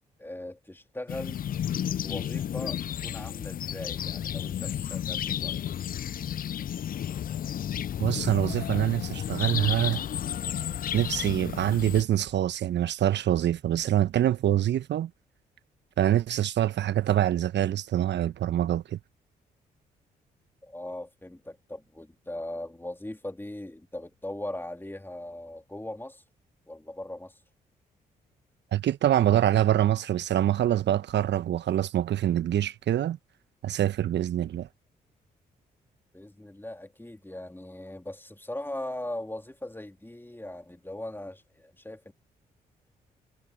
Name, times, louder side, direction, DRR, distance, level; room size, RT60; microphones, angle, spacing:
voice 1, 0.2-1.4 2.0-5.6 20.6-26.2 26.7-27.4 36.1-42.1, left 1 dB, 10° left, 3.1 m, -39 dB
sound 1, 1.1-12.0, left 10 dB, 45° left, 0.5 m, -32 dB
voice 2, 8.0-10.0 10.9-15.1 16.0-19.0 28.7-33.2 33.6-34.7, right 12 dB, 60° right, 1.2 m, -25 dB
hypercardioid pair, 40°, 20 cm